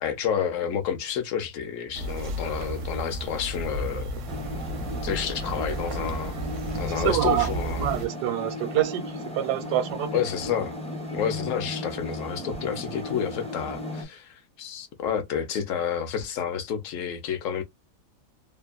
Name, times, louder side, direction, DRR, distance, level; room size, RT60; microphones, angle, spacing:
voice 1, 0.0-4.1 5.0-6.3 6.7-7.9 10.1-10.8 11.1-17.6, left 8 dB, 65° left, 0.9 m, -29 dB
sound 1, 1.9-8.1, right 2 dB, 65° right, 0.8 m, -33 dB
sound 2, 4.3-14.0, left 1 dB, 10° left, 0.3 m, -36 dB
voice 2, 7.0-7.5 7.8-10.2, right 12 dB, 85° right, 1.2 m, -26 dB
2.9 x 2.2 x 2.3 m
omnidirectional pair, 1.7 m